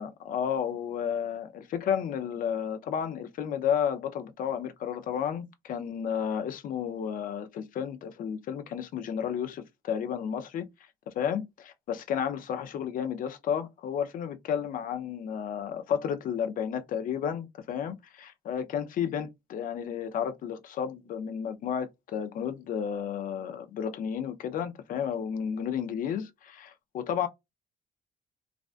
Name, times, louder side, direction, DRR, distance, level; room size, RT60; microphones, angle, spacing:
voice 1, 0.0-10.7 11.1-27.3, left 8 dB, 55° left, 0.5 m, -32 dB
2.4 x 2.2 x 2.4 m
cardioid pair, 110°, 17 cm